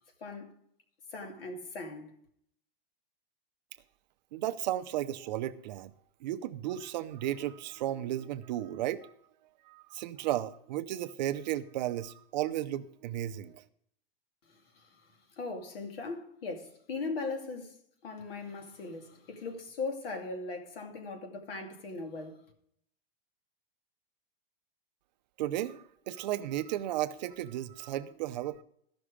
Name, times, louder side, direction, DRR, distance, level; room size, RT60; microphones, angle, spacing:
voice 1, 0.2-0.5 1.1-2.1 14.5-17.8 18.0-22.4, left 3 dB, 75° left, 2.5 m, -39 dB
voice 2, 4.3-5.9 6.2-9.1 9.7-13.6 25.4-28.6, right 13 dB, 50° right, 0.6 m, -34 dB
14.0 x 6.2 x 4.9 m
supercardioid pair, 165°, 29 cm